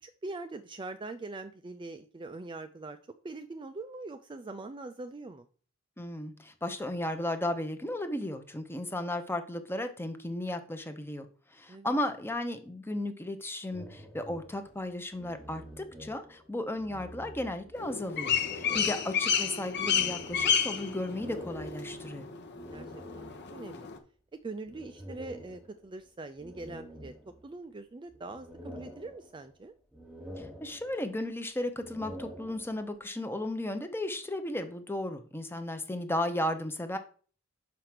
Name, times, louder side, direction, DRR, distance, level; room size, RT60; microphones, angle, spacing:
voice 1, 0.0-3.0 3.2-5.5 11.7-11.9 18.7-18.9 22.7-23.9 24.3-27.1 27.4-29.7, right 3 dB, 20° right, 9 dB, 0.4 m, -43 dB
voice 2, 6.0-22.3 30.4-37.0, left 1 dB, 10° left, 8 dB, 0.8 m, -35 dB
sound 1, 13.7-16.5 16.7-17.9 18.3-23.7 24.7-26.0 26.4-27.7 28.1-29.6 29.9-31.2 31.7-33.0, equal, 5° right, 1.5 m, -48 dB
sound 2, 17.8-24.0, left 7 dB, 55° left, 0.9 m, -31 dB
5.9 x 5.0 x 5.9 m, 0.42 s
head